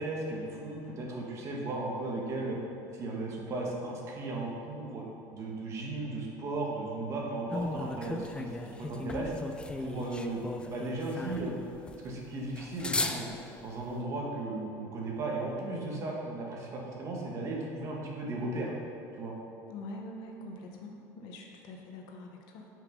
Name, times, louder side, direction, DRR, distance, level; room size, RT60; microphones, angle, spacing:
voice 1, 0.0-2.6 2.9-5.0 5.3-8.5 8.8-9.3 9.8-11.6 12.0-13.3 13.6-18.7 19.2-19.3, right 2 dB, 40° right, -2 dB, 1.9 m, -36 dB
sound 1, 7.5-13.9, left 2 dB, 10° left, 0.5 m, -37 dB
voice 2, 19.7-22.7, left 2 dB, 70° left, 1 dB, 1.3 m, -44 dB
8.2 x 5.9 x 5.5 m, 2.7 s
supercardioid pair, 125°, 8 cm